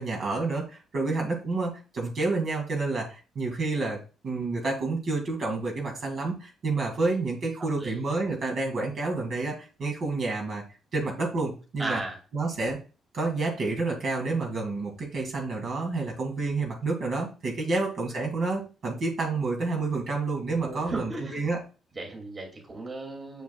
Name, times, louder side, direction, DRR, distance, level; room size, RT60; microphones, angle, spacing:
voice 1, 0.0-10.6 10.9-12.0 12.3-12.8 13.1-21.6, right 3 dB, 60° right, 0 dB, 2.2 m, -29 dB
voice 2, 11.8-12.2 20.6-21.5 21.9-23.4, right 2 dB, 30° right, 1 dB, 2.4 m, -35 dB
7.0 x 6.0 x 2.3 m, 0.34 s
cardioid pair, 90°, 0 cm